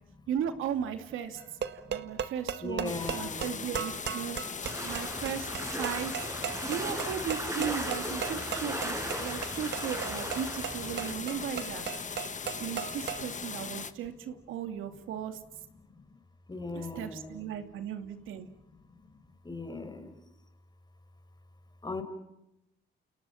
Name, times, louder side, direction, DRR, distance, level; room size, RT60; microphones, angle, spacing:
voice 1, 0.3-1.4 1.9-4.4 4.8-6.3 6.7-11.8 12.6-15.4 16.7-18.5, right 8 dB, 85° right, 8 dB, 2.6 m, -36 dB
sound 1, 1.4-13.3, right 8 dB, 60° right, 1.8 m, -38 dB
voice 2, 2.6-3.7 16.5-17.5 19.4-20.1 21.8-22.0, left 3 dB, 20° left, 8 dB, 5.5 m, -38 dB
sound 2, 2.9-13.9, left 6 dB, 40° left, 1.6 m, -39 dB
sound 3, 4.6-11.1, right 1 dB, 15° right, 5.8 m, -37 dB
30.0 x 28.5 x 5.8 m, 0.88 s
cardioid pair, 90°, 20 cm